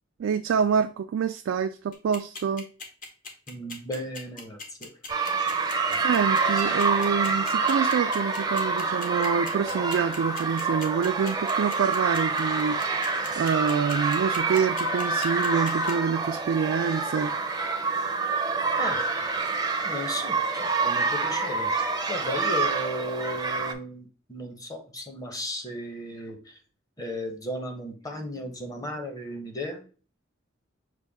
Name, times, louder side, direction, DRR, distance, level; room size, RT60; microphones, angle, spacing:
voice 1, 0.2-2.7 6.0-17.3, right 6 dB, 85° right, 0.3 m, -26 dB
sound 1, 1.9-15.9, left 3 dB, 45° left, 1.0 m, -39 dB
voice 2, 3.5-4.9 5.9-6.0 18.8-19.0 19.8-21.8 22.1-26.6 27.0-29.9, left 1 dB, 20° left, 0.8 m, -35 dB
sound 2, 5.1-23.7, right 4 dB, 20° right, 0.5 m, -27 dB
6.4 x 2.2 x 3.4 m
head